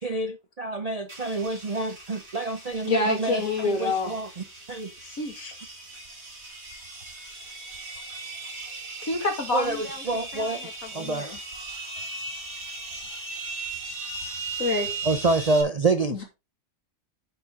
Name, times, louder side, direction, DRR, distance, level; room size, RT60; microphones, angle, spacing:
voice 1, 0.0-4.9 9.5-10.6 10.9-11.3 15.0-16.2, right 3 dB, 45° right, 0.5 m, -27 dB
sound 1, 1.1-15.6, right 3 dB, 75° right, 3.6 m, -38 dB
voice 2, 2.8-4.1 14.6-14.9 16.1-16.2, left 3 dB, 70° left, 3.1 m, -26 dB
voice 3, 5.0-5.5 8.1-8.2 9.0-10.0 10.3-11.4, left 2 dB, 85° left, 2.4 m, -31 dB
9.3 x 7.3 x 3.7 m
omnidirectional pair, 1.4 m